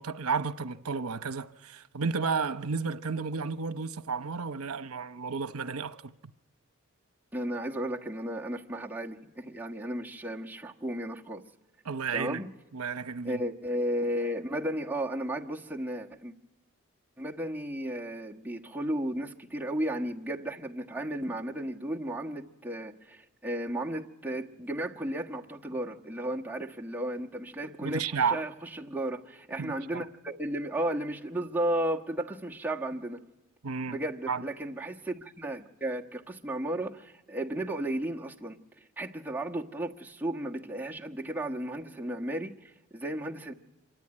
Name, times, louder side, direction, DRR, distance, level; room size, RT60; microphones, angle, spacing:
voice 1, 0.0-6.1 11.8-12.4 12.7-13.4 27.8-28.4 29.6-30.1 33.6-34.0 34.3-34.4, right 5 dB, 80° right, 0.9 m, -32 dB
voice 2, 7.3-11.4 12.1-12.5 13.2-16.3 17.2-33.2 33.9-38.6 39.0-43.5, right 1 dB, 10° right, 1.3 m, -34 dB
25.5 x 23.0 x 9.7 m
head